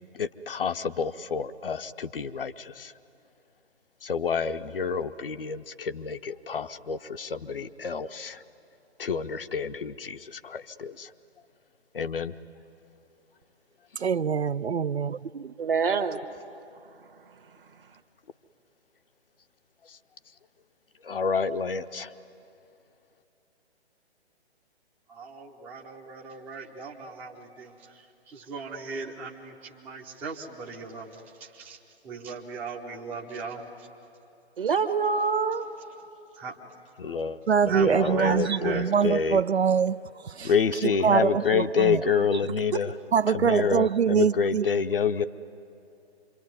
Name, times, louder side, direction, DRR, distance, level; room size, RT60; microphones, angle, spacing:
voice 1, 0.1-2.9 4.0-8.4 9.0-11.1 11.9-12.3 15.0-15.1 19.8-20.0 21.0-22.2 37.0-37.4 37.6-39.4 40.4-42.9 43.3-45.2, left 6 dB, 55° left, 9 dB, 0.8 m, -28 dB
voice 2, 14.0-15.5 37.5-40.5 40.8-42.0 43.1-44.6, right 7 dB, 70° right, 15 dB, 0.5 m, -24 dB
voice 3, 15.6-16.2 34.6-35.7 38.2-38.8 42.7-42.8, right 5 dB, 55° right, 9 dB, 1.3 m, -26 dB
voice 4, 25.1-31.8 32.0-33.9 36.4-36.5 37.7-38.9, right 4 dB, 5° right, 0 dB, 0.6 m, -38 dB
26.5 x 23.5 x 9.5 m, 2.7 s
figure-of-eight pair, 135°, 34 cm